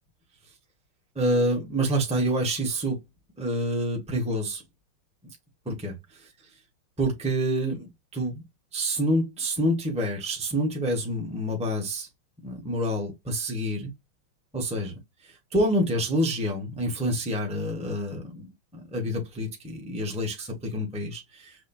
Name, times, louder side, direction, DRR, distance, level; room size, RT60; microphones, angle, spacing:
voice 1, 1.1-3.0 3.4-4.6 5.6-6.3 7.0-8.4 8.7-12.1 12.4-13.9 14.5-15.0 15.5-21.5, equal, 5° right, 1.0 m, -27 dB
6.4 x 2.5 x 2.6 m
omnidirectional pair, 2.3 m